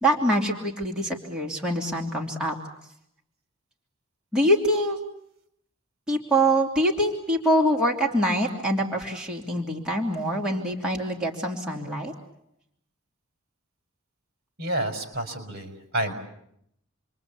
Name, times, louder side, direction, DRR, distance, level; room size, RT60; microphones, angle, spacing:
voice 1, 0.0-2.5 4.3-5.0 6.1-12.1, right 1 dB, 5° right, -2 dB, 3.0 m, -24 dB
voice 2, 14.6-16.1, right 1 dB, 50° right, 6 dB, 5.3 m, -29 dB
29.0 x 23.0 x 8.5 m, 0.75 s
head